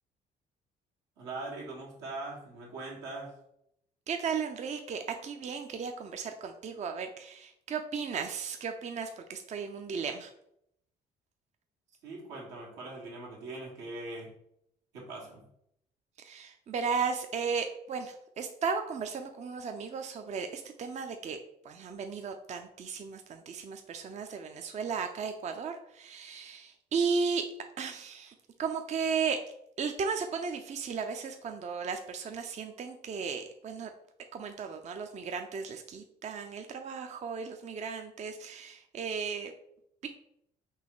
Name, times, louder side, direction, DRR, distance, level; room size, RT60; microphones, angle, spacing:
voice 1, 1.2-3.3 12.0-14.3 14.9-15.4, right 2 dB, 85° right, -4 dB, 1.5 m, -41 dB
voice 2, 4.1-10.3 16.2-21.4 21.6-27.4 27.8-29.4 29.8-33.9 34.3-39.5 40.0-40.1, right 5 dB, 40° right, 6 dB, 0.5 m, -35 dB
4.0 x 2.8 x 3.8 m, 0.75 s
supercardioid pair, 65°, 18 cm